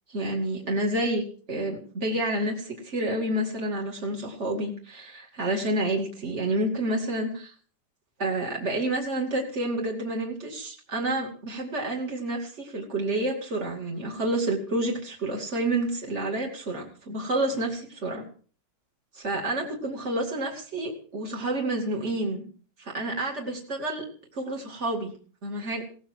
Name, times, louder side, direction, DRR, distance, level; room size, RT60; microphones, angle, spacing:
voice 1, 0.1-7.5 8.2-18.2 19.1-22.4 22.8-24.0 24.3-25.1 25.4-25.8, right 1 dB, 45° right, 0 dB, 0.8 m, -29 dB
17.0 x 15.0 x 4.7 m, 0.44 s
omnidirectional pair, 5.6 m